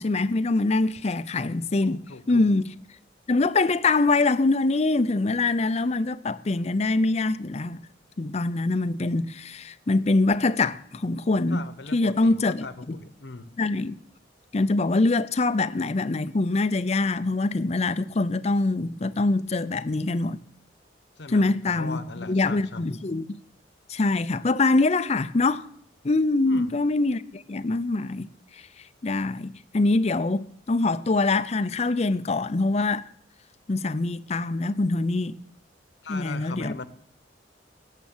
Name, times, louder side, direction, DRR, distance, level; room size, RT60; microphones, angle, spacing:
voice 1, 0.0-2.0 2.3-2.7 3.3-7.8 8.2-11.6 11.9-13.0 13.6-14.0 14.5-20.4 21.3-23.4 23.9-25.7 26.0-28.3 28.6-28.7 29.0-33.0 33.7-35.3 36.1-36.8, left 3 dB, 35° left, 0.5 m, -24 dB
voice 2, 1.8-2.5 11.5-13.6 21.2-22.9 26.4-26.8 36.0-36.9, left 3 dB, 70° left, 1.0 m, -39 dB
17.5 x 7.5 x 7.3 m
head